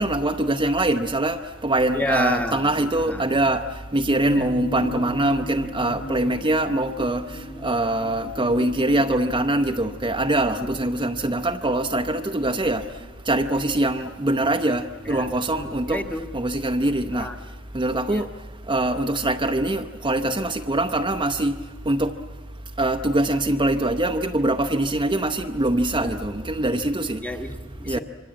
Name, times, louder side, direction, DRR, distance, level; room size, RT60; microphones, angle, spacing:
voice 1, 0.0-16.0 16.3-22.2 22.6-27.2 27.9-28.0, right 1 dB, 20° right, 0.8 m, -23 dB
voice 2, 1.9-3.4 4.3-4.5 6.3-6.4 10.6-10.7 15.0-16.3 17.1-17.4 18.1-18.3 25.9-26.2 27.2-28.0, left 1 dB, 5° left, 1.2 m, -31 dB
sound 1, 4.0-13.9 14.2-14.3, left 1 dB, 75° left, 7.0 m, -38 dB
26.0 x 24.5 x 8.8 m
head